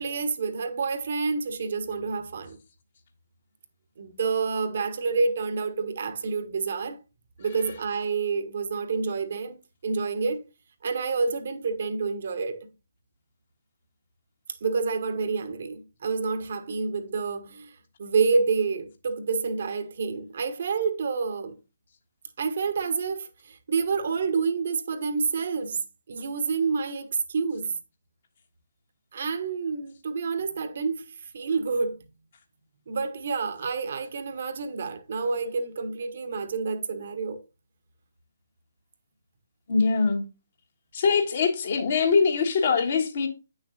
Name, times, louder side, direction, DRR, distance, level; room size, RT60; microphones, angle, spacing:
voice 1, 0.0-2.6 4.0-7.0 7.4-9.6 9.8-10.4 10.8-12.6 14.6-17.7 18.0-21.5 22.4-25.8 26.1-27.7 29.1-32.0 32.9-37.4, right 4 dB, 45° right, 1.0 m, -28 dB
voice 2, 39.7-40.2 40.9-43.3, left 5 dB, 45° left, 1.4 m, -23 dB
9.5 x 6.4 x 2.5 m
figure-of-eight pair, 135°, 0 cm